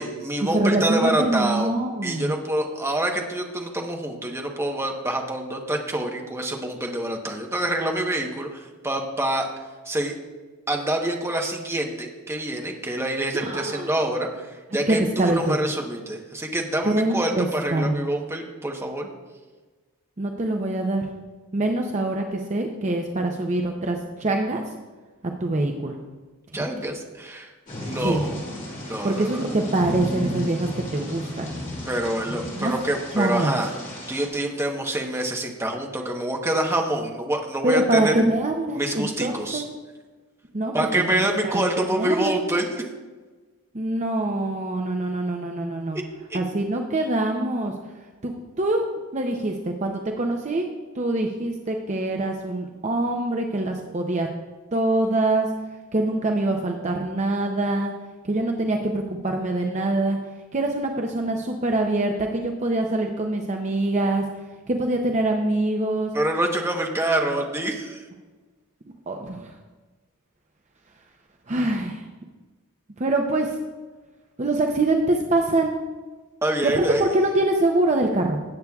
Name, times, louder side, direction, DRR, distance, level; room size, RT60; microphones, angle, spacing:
voice 1, 0.0-1.7 2.0-9.5 9.9-10.1 10.7-19.1 26.5-27.5 27.8-28.3 28.8-29.4 31.9-33.7 34.1-38.1 38.7-39.6 40.7-42.7 46.3-46.4 66.1-68.0 76.4-77.0, right 1 dB, 10° right, 1 dB, 1.0 m, -26 dB
voice 2, 0.5-2.3 13.3-13.9 14.9-15.6 16.9-18.0 20.2-21.1 21.5-24.6 25.4-26.0 28.0-28.2 29.0-31.5 32.5-32.7 33.1-33.6 37.6-39.6 40.5-41.6 42.0-42.3 43.7-46.0 46.3-47.7 48.2-48.3 48.6-48.9 49.1-50.7 50.9-54.3 54.7-55.5 55.9-57.9 58.3-60.2 60.5-64.2 64.7-66.1 69.1-69.5 71.5-72.0 73.0-73.5 74.4-75.8 76.6-78.4, right 2 dB, 30° right, 2 dB, 0.6 m, -24 dB
Thunder / Rain, 27.7-34.3, left 1 dB, 35° left, 2.4 m, -33 dB
17.5 x 8.1 x 2.3 m, 1.3 s
head